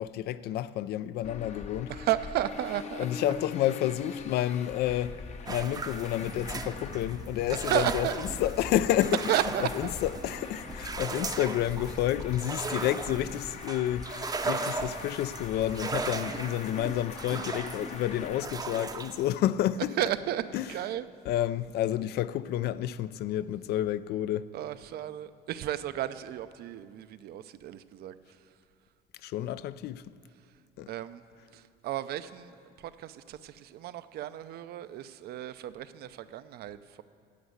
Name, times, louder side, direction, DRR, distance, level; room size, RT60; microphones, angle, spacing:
voice 1, 0.0-1.9 3.0-5.2 5.5-8.1 8.4-9.2 9.6-19.9 20.5-20.7 21.3-24.5 29.2-30.1 30.8-30.9, left 12 dB, 70° left, 0.4 m, -30 dB
Traffic noise roadway noise, 1.2-18.4, left 5 dB, 40° left, 0.8 m, -42 dB
voice 2, 1.9-3.3 7.6-8.2 9.3-9.9 20.0-21.1 24.5-28.4 30.9-31.2 31.5-32.5 32.8-37.0, right 12 dB, 70° right, 0.5 m, -33 dB
sound 1, 5.5-19.4, right 4 dB, 25° right, 0.6 m, -37 dB
11.5 x 8.0 x 8.0 m
cardioid pair, 110°, 17 cm